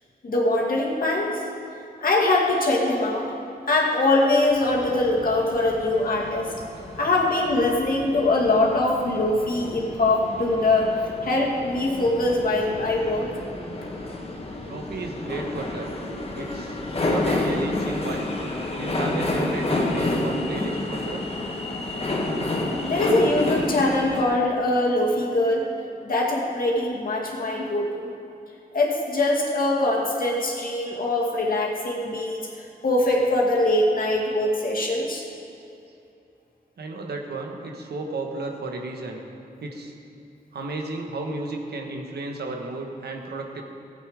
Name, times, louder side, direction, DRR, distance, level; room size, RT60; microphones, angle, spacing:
voice 1, 0.2-1.4 2.0-3.3 3.6-6.5 7.0-10.9 11.2-13.3 22.8-25.6 26.0-28.1 28.7-32.4 32.8-35.2, left 2 dB, 60° left, -3 dB, 2.2 m, -22 dB
sound 1, 4.5-24.2, left 2 dB, 35° left, 1.5 m, -30 dB
voice 2, 14.7-15.9 16.4-18.3 18.8-21.2 36.8-39.2 39.6-39.9 40.5-43.6, right 2 dB, 85° right, 2 dB, 1.3 m, -33 dB
15.0 x 8.4 x 5.0 m, 2.7 s
wide cardioid pair, 90°, 17 cm